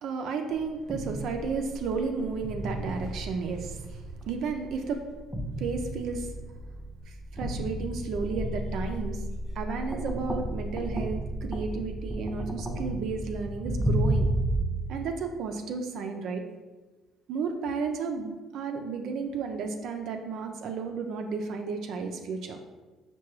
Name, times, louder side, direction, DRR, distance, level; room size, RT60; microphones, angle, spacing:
voice 1, 0.0-5.1 5.6-6.3 7.1-9.3 9.5-14.3 14.9-16.4 17.3-22.6, right 5 dB, 70° right, 4 dB, 0.4 m, -33 dB
sound 1, 0.6-14.6, right 1 dB, 5° right, 0.4 m, -33 dB
4.7 x 2.2 x 3.0 m, 1.2 s
supercardioid pair, 75°, 0 cm